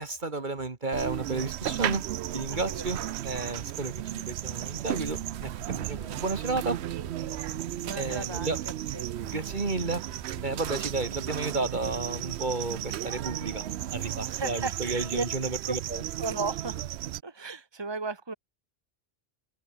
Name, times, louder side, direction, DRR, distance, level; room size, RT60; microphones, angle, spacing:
voice 1, 0.0-2.0 2.3-6.8 8.0-8.6 9.3-10.0 10.4-16.0, right 3 dB, 50° right, 1.9 m, -32 dB
sound 1, 0.9-17.2, right 12 dB, 90° right, 0.9 m, -34 dB
voice 2, 2.5-3.1 7.8-8.6 8.9-9.1 14.3-15.3 15.6-15.8 16.2-16.8 17.2-18.3, right 4 dB, 25° right, 1.7 m, -35 dB
sound 2, 5.0-14.7, left 2 dB, 80° left, 5.6 m, -50 dB
omnidirectional pair, 1.1 m